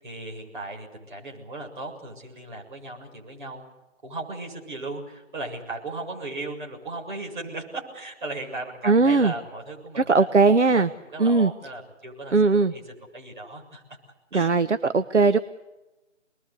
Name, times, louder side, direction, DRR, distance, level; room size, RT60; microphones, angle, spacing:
voice 1, 0.0-3.6 4.0-10.3 10.6-10.8 11.1-13.8 14.3-14.5 14.8-15.0, right 2 dB, 40° right, -1 dB, 7.4 m, -37 dB
voice 2, 8.8-9.3 10.0-10.9 11.2-11.5 12.3-12.7 14.3-15.4, right 4 dB, 65° right, 11 dB, 1.2 m, -19 dB
27.0 x 21.0 x 8.3 m, 1.0 s
figure-of-eight pair, 155°, 38 cm